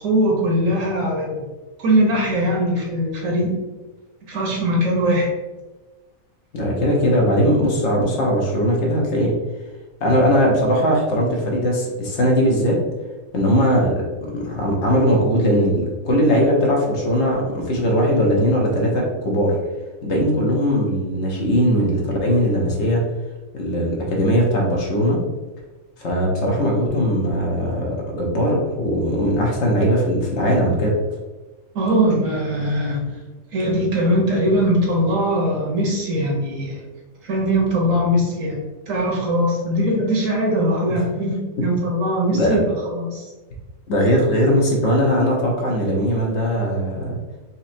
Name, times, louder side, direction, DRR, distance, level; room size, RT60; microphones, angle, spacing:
voice 1, 0.0-1.4 1.8-3.5 4.3-5.3 31.7-33.0 33.5-36.8 37.2-38.6 38.9-42.6 42.9-43.3, equal, 65° right, -2 dB, 1.3 m, -20 dB
voice 2, 6.5-9.3 10.0-12.8 13.3-19.6 20.0-23.0 23.5-25.2 26.0-31.0 42.3-42.6 43.9-47.2, equal, 55° left, -2 dB, 1.1 m, -19 dB
4.2 x 2.7 x 2.6 m, 1.2 s
omnidirectional pair, 1.5 m